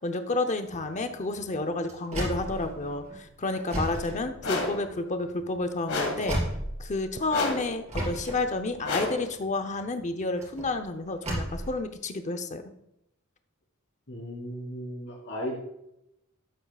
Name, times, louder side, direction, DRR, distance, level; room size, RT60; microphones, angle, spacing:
voice 1, 0.0-6.4 6.8-12.6, left 2 dB, 35° left, 7 dB, 0.7 m, -30 dB
sound 1, 0.7-7.4 7.9-11.7, right 1 dB, 30° right, 3.3 m, -35 dB
sound 2, 4.4-4.9 5.9-6.4 7.3-7.8 8.8-9.3, left 3 dB, 90° left, 1.9 m, -30 dB
voice 2, 14.1-15.6, equal, 60° left, -2 dB, 3.6 m, -36 dB
12.0 x 8.5 x 2.4 m, 0.84 s
head